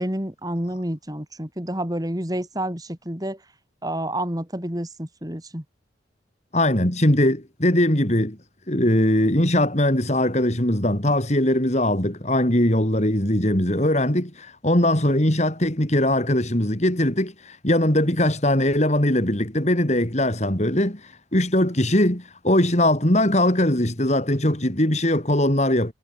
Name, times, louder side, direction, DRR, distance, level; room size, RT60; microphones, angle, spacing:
voice 1, 0.0-3.4 3.8-5.6, right 1 dB, 20° right, 4.1 m, -29 dB
voice 2, 6.5-8.4 8.7-21.0 21.3-25.9, left 1 dB, 35° left, 3.7 m, -20 dB
head